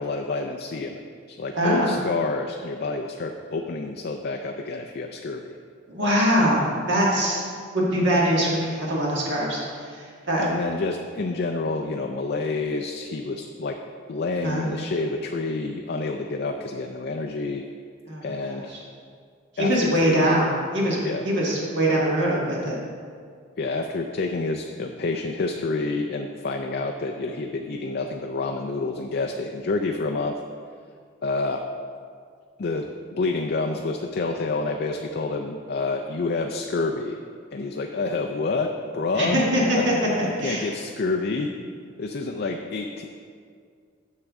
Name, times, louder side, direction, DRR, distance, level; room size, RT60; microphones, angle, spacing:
voice 1, 0.0-5.6 10.4-13.8 14.1-17.7 18.2-18.8 19.6-20.3 21.0-21.2 23.6-30.4 31.2-31.7 32.6-37.2 37.5-39.4 39.7-39.9 40.2-41.5 42.0-43.0, left 3 dB, 50° left, 3 dB, 0.4 m, -28 dB
voice 2, 1.5-1.9 5.9-7.4 7.7-9.6 10.3-10.5 14.4-14.6 18.1-18.8 19.6-20.5 20.7-22.8 39.2-40.6, equal, 55° right, -5 dB, 1.6 m, -23 dB
10.0 x 6.6 x 3.6 m, 2.1 s
head